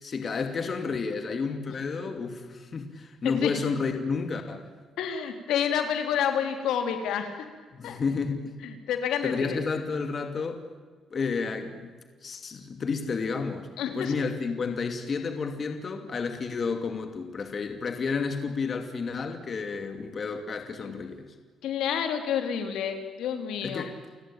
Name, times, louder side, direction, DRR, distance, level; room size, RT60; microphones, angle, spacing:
voice 1, 0.0-4.7 7.7-8.5 9.2-10.6 11.1-11.9 12.2-13.7 13.9-21.2 23.6-23.9, left 5 dB, 35° left, 7 dB, 2.7 m, -31 dB
voice 2, 5.0-7.5 7.8-8.0 8.6-9.6 13.8-14.1 20.8-20.9 21.6-23.8, left 8 dB, 85° left, 6 dB, 3.7 m, -29 dB
30.0 x 17.0 x 9.0 m, 1.5 s
cardioid pair, 130°, 0 cm